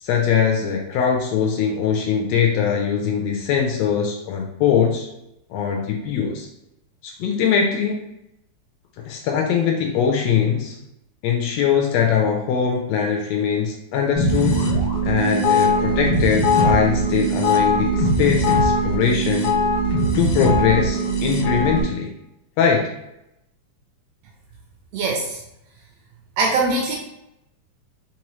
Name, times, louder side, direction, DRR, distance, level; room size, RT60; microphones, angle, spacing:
voice 1, 0.0-5.1 5.5-6.5 7.0-8.0 9.0-10.8 11.2-14.7 15.0-19.5 20.1-22.1 22.6-22.9, left 7 dB, 80° left, 1 dB, 1.6 m, -21 dB
sound 1, 14.2-21.8, equal, 60° left, 1.7 m, -20 dB
voice 2, 24.9-25.4 26.4-27.0, right 3 dB, 80° right, 0 dB, 1.5 m, -21 dB
4.7 x 2.9 x 3.0 m, 0.85 s
omnidirectional pair, 3.3 m